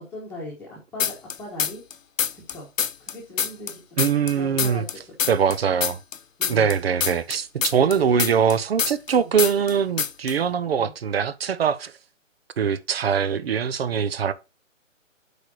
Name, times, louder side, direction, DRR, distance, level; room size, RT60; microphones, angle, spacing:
voice 1, 0.1-1.8 2.3-2.7 3.0-4.0 4.3-4.8 6.4-6.7 9.2-9.3 10.7-10.9, left 1 dB, 5° left, 1.5 m, -39 dB
sound 1, 1.0-1.9 2.2-4.9 5.2-9.1 9.4-9.7 10.0-10.3, left 7 dB, 75° left, 0.9 m, -25 dB
voice 2, 4.0-4.8 5.3-6.0 6.5-11.9 12.6-14.3, right 7 dB, 50° right, 0.8 m, -22 dB
8.1 x 5.2 x 4.7 m
hypercardioid pair, 155°, 39 cm